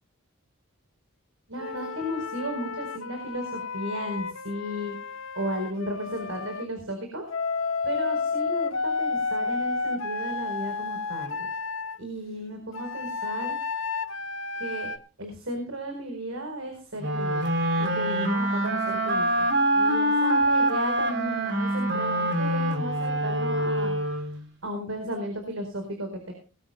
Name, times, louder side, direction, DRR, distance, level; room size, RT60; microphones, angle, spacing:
voice 1, 1.5-5.0 5.3-7.2 7.8-11.5 12.0-13.6 14.6-14.9 15.2-17.4 17.8-19.5 19.7-24.2 24.6-26.3, equal, 80° right, 4 dB, 4.5 m, -34 dB
Wind instrument woodwind instrument, 1.6-6.6 7.3-12.0 12.7-15.0, left 4 dB, 75° left, 1.4 m, -31 dB
sound 1, 17.0-24.5, right 1 dB, 55° right, 3.4 m, -25 dB
20.5 x 14.5 x 2.3 m, 0.36 s
head